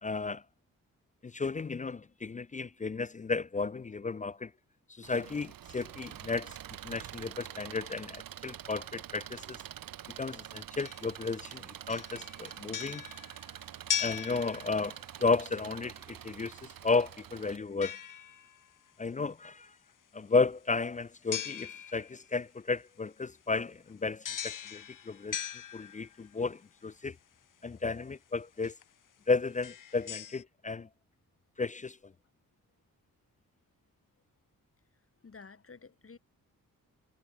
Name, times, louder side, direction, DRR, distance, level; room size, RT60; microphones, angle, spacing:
voice 1, 0.0-0.4 1.2-4.5 4.9-6.6 6.8-9.6 10.2-13.0 14.0-18.0 19.0-19.7 20.1-27.2 27.6-28.7 29.3-30.9 31.6-32.0, left 4 dB, 20° left, 0.4 m, -33 dB
Engine, 5.0-17.6, right 11 dB, 75° right, 1.3 m, -46 dB
sound 1, 10.8-11.5 11.9-15.2 17.8-18.7 21.3-22.3 24.2-26.3 27.9-28.0 28.6-28.8 29.5-30.4, left 9 dB, 65° left, 1.3 m, -39 dB
voice 2, 35.2-36.2, left 4 dB, 40° left, 3.4 m, -51 dB
cardioid pair, 65°, 34 cm